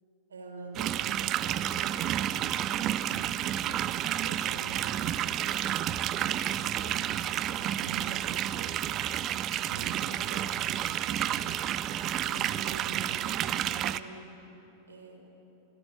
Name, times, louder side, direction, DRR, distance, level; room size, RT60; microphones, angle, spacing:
voice 1, 0.3-3.8 4.2-7.0 7.4-11.7 12.3-14.3 14.9-15.3, right 3 dB, 70° right, 1 dB, 5.2 m, -47 dB
sound 1, 0.7-14.0, right 11 dB, 35° right, 0.7 m, -30 dB
29.5 x 17.5 x 8.6 m, 3.0 s
figure-of-eight pair, 90°, 0 cm